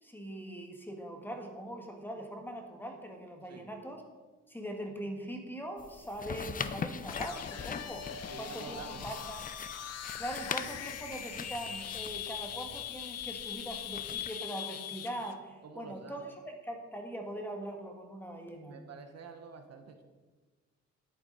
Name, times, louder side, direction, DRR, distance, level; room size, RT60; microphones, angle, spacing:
voice 1, 0.0-4.0 4.5-9.4 10.2-16.3 16.6-18.8, right 1 dB, 5° left, 3 dB, 1.8 m, -41 dB
sound 1, 5.8-14.3, left 6 dB, 30° left, 0.6 m, -42 dB
sound 2, 7.1-15.3, left 9 dB, 55° left, 0.9 m, -41 dB
voice 2, 8.3-9.2 15.6-16.3 18.7-20.0, right 5 dB, 55° right, 6 dB, 1.2 m, -48 dB
10.5 x 9.4 x 4.1 m, 1.3 s
cardioid pair, 90°, 30 cm